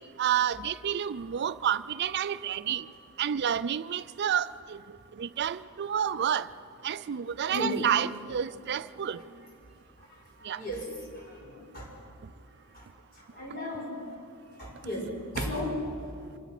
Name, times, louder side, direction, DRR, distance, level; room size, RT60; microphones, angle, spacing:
voice 1, 0.2-2.9 3.2-4.8 5.2-6.5 6.8-9.2 10.5-10.6, right 9 dB, 50° right, 0.4 m, -29 dB
voice 2, 7.5-7.9 8.9-9.3 10.0-12.0 12.7-14.2 14.5-15.8 16.3-16.4, left 1 dB, 45° left, 5.5 m, -37 dB
26.5 x 16.5 x 6.0 m
head